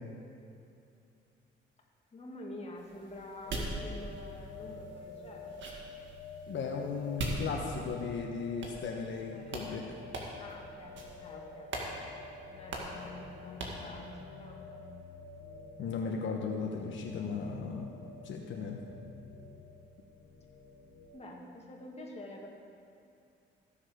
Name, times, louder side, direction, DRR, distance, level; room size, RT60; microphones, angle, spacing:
voice 1, 2.1-5.6 9.3-10.1 10.4-12.1 12.5-14.9 21.1-22.5, left 2 dB, 30° left, -1 dB, 2.0 m, -48 dB
sound 1, 2.8-8.1 8.6-9.2 9.5-9.7 10.1-10.5 10.9-11.3 11.7-11.9 12.2-12.3 12.7-13.0 13.6-13.9, right 2 dB, 70° right, 1.9 m, -41 dB
sound 2, 3.4-21.1, left 3 dB, 85° left, 1.6 m, -49 dB
voice 2, 6.5-9.8 15.8-17.9 18.2-18.8, left 5 dB, 70° left, 0 dB, 1.0 m, -36 dB
15.0 x 7.1 x 5.0 m, 2.6 s
cardioid pair, 90°, 20 cm